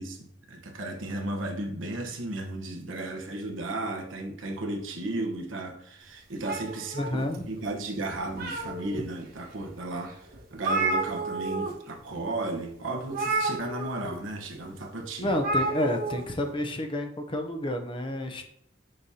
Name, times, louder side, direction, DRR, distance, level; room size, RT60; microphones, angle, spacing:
voice 1, 0.0-10.2 10.5-15.4, right 2 dB, 90° right, 1.1 m, -34 dB
sound 1, 6.4-7.6 8.1-9.0 9.6-9.7 10.1-10.2 10.3-11.7 12.0-12.2 13.1-14.1 15.3-16.2, right 3 dB, 50° right, 1.2 m, -30 dB
voice 2, 6.9-7.5 15.2-18.4, left 1 dB, 25° left, 0.7 m, -30 dB
6.9 x 5.2 x 2.8 m
head